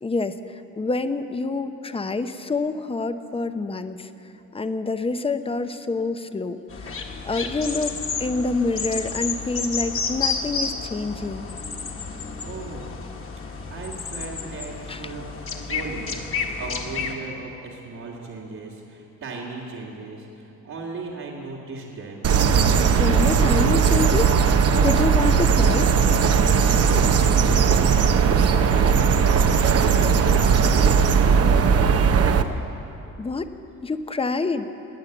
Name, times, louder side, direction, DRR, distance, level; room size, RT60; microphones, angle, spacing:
voice 1, 0.0-4.1 4.5-7.0 7.2-11.5 14.9-15.1 23.0-24.3 24.8-25.9 33.2-33.5 33.8-34.7, left 3 dB, 20° left, 10 dB, 0.8 m, -27 dB
sound 1, 6.7-17.1, left 5 dB, 45° left, 1.6 m, -31 dB
voice 2, 12.4-12.9 13.7-22.3 26.3-32.1, right 3 dB, 70° right, -7 dB, 2.3 m, -37 dB
sound 2, 22.2-32.4, right 6 dB, 55° right, 0.9 m, -18 dB
21.0 x 8.8 x 7.9 m, 2.9 s
cardioid pair, 90°, 30 cm